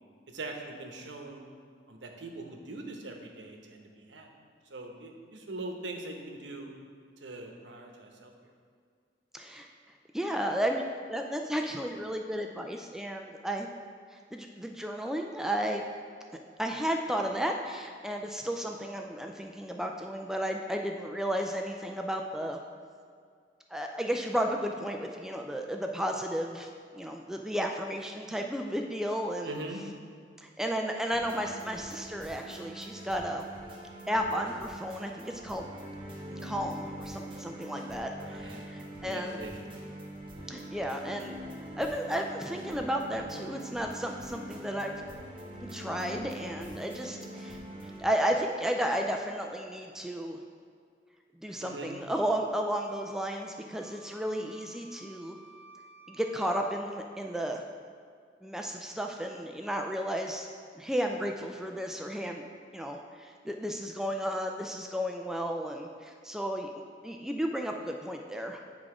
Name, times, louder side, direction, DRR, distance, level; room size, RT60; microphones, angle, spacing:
voice 1, 0.3-1.4 1.9-4.3 4.7-6.7 7.2-8.3 29.4-29.8 38.2-38.7 39.0-39.8 51.6-51.9, right 2 dB, 85° right, 2 dB, 0.9 m, -42 dB
voice 2, 9.3-9.7 10.1-13.7 14.3-15.8 16.6-22.6 23.7-29.5 30.4-33.4 34.1-35.7 36.3-39.4 40.5-41.4 41.8-44.9 45.6-47.6 48.0-50.4 51.4-55.4 56.1-57.6 58.4-60.5 60.7-62.5 62.7-66.7 67.0-68.6, equal, 5° right, 2 dB, 0.3 m, -33 dB
sound 1, 31.1-48.0, right 1 dB, 30° right, 0.9 m, -43 dB
Wind instrument woodwind instrument, 52.7-56.8, right 2 dB, 35° left, 1.8 m, -55 dB
9.5 x 3.6 x 4.9 m, 2.1 s
head